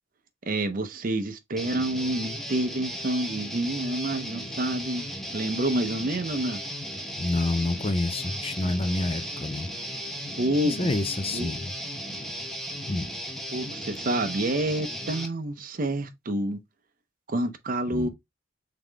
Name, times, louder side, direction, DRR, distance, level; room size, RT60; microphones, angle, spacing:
voice 1, 0.5-5.1 5.3-6.6 10.4-10.9 11.3-11.5 13.5-16.6 17.3-18.1, right 1 dB, 45° right, 0.6 m, -28 dB
Guitar, 1.6-15.3, equal, ahead, 0.8 m, -36 dB
voice 2, 7.2-9.7 10.6-11.7 12.9-13.1 17.9-18.1, left 2 dB, 30° left, 0.5 m, -28 dB
3.8 x 3.6 x 3.3 m
head